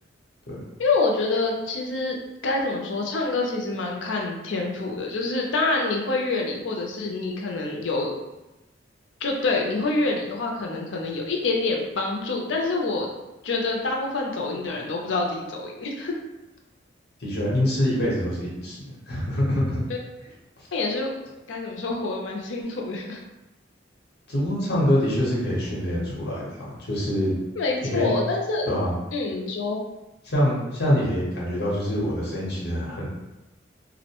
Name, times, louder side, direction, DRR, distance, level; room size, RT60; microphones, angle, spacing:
voice 1, 0.8-8.1 9.2-13.1 13.4-16.2 20.7-21.2 21.5-23.2 27.6-28.7 29.1-29.8, left 3 dB, 80° left, 0 dB, 0.5 m, -26 dB
voice 2, 17.2-18.8 19.1-19.8 24.3-27.3 27.8-28.1 28.6-29.0 30.2-33.1, equal, 55° left, -5 dB, 0.9 m, -25 dB
2.5 x 2.1 x 2.9 m, 1.0 s
head